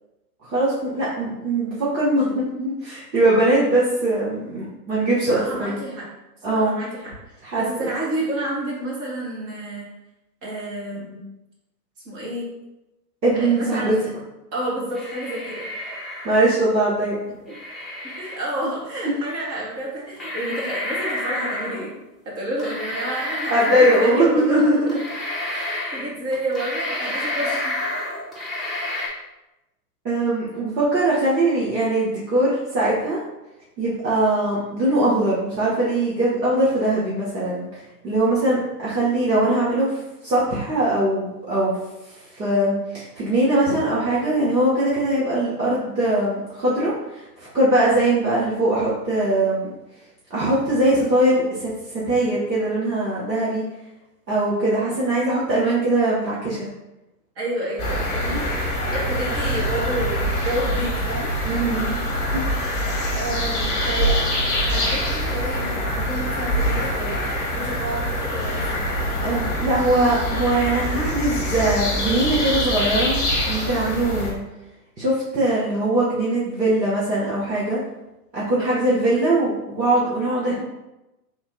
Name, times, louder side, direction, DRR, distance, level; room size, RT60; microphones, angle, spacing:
voice 1, 0.4-5.8 6.4-6.8 7.4-7.6 13.2-13.9 16.2-17.2 19.0-19.1 23.5-24.9 30.0-33.2 33.8-37.6 38.0-41.8 42.3-49.7 50.3-53.6 54.3-56.7 61.4-62.0 62.3-62.4 69.2-74.4 75.0-77.8 78.3-80.6, right 1 dB, 80° right, -8 dB, 1.3 m, -21 dB
voice 2, 5.2-6.0 6.5-7.1 7.6-9.9 10.4-11.3 12.0-12.5 13.3-14.1 14.5-15.7 18.0-21.9 22.2-24.8 25.5-27.7 57.3-61.3 63.1-64.3 64.6-68.8 78.6-78.9, right 1 dB, 30° right, -5 dB, 1.4 m, -30 dB
sound 1, 14.9-16.6 17.5-18.4 19.6-19.7 20.2-21.8 22.6-24.4 24.9-26.0 26.3-29.1, left 1 dB, ahead, 0.8 m, -29 dB
sound 2, 57.8-74.3, equal, 30° left, 1.1 m, -24 dB
3.5 x 2.7 x 3.7 m, 0.96 s
figure-of-eight pair, 105°, 49 cm